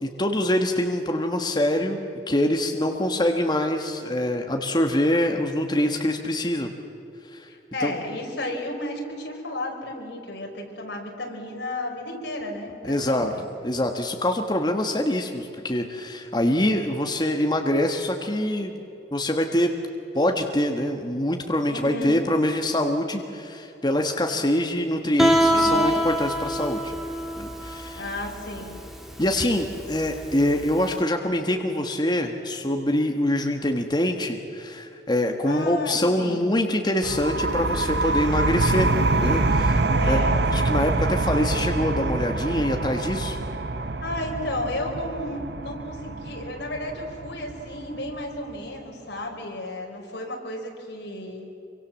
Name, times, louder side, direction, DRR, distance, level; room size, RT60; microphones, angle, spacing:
voice 1, 0.0-6.7 7.3-7.5 7.8-7.9 12.8-13.3 13.6-18.8 19.1-19.7 20.1-26.9 27.4-28.1 29.2-38.9 39.2-40.2 40.5-43.4, left 1 dB, 25° left, 4 dB, 1.4 m, -24 dB
voice 2, 7.5-13.4 21.7-22.2 25.5-26.0 28.0-28.8 35.4-36.5 39.9-40.4 44.0-51.5, left 1 dB, 80° left, 1 dB, 5.2 m, -33 dB
Guitar, 25.2-30.9, right 1 dB, ahead, 2.2 m, -25 dB
sound 1, 37.0-48.4, right 2 dB, 65° right, 1.1 m, -25 dB
26.5 x 24.5 x 7.5 m, 2.9 s
head